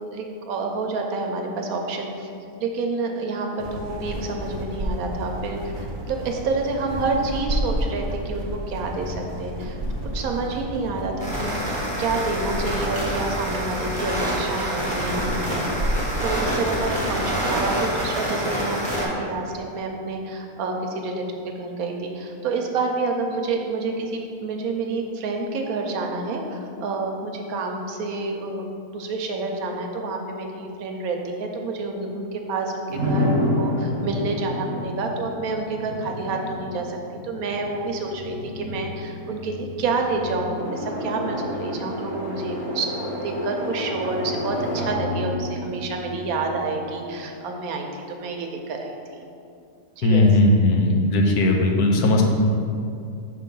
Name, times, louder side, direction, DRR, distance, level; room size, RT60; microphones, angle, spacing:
voice 1, 0.1-2.3 2.6-9.8 10.1-11.6 12.0-28.6 28.9-37.0 37.2-49.3 49.9-50.3, right 3 dB, 75° right, 2 dB, 1.1 m, -28 dB
sound 1, 3.6-18.0, right 1 dB, 40° right, 0.3 m, -31 dB
sound 2, 11.2-19.1, equal, 5° left, 1.1 m, -27 dB
sound 3, 32.9-46.7, left 1 dB, 65° left, 2.1 m, -30 dB
voice 2, 50.0-52.2, left 2 dB, 85° left, 1 dB, 1.2 m, -18 dB
5.8 x 3.3 x 5.3 m, 2.5 s
omnidirectional pair, 1.6 m